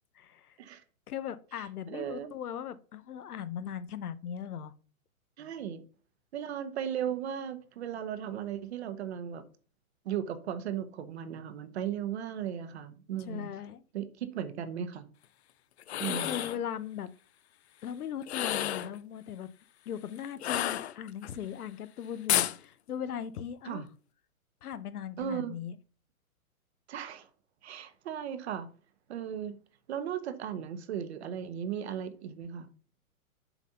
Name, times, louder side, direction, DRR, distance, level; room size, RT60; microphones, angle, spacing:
voice 1, 0.2-0.6 1.1-4.7 13.3-13.8 16.1-17.1 17.8-19.5 19.9-23.8 24.6-25.8, left 9 dB, 90° left, 0.9 m, -38 dB
voice 2, 1.9-2.3 5.4-5.8 6.3-9.5 10.0-13.5 13.9-15.1 16.0-16.4 23.6-23.8 25.2-25.6 26.9-27.3 27.6-28.7 29.1-29.5 29.9-32.7, right 9 dB, 50° right, 1.1 m, -36 dB
sound 1, 15.8-16.6 18.2-19.0 20.4-21.3 22.3-22.6, left 12 dB, 50° left, 0.5 m, -30 dB
7.0 x 4.2 x 5.5 m
hypercardioid pair, 160°, 43 cm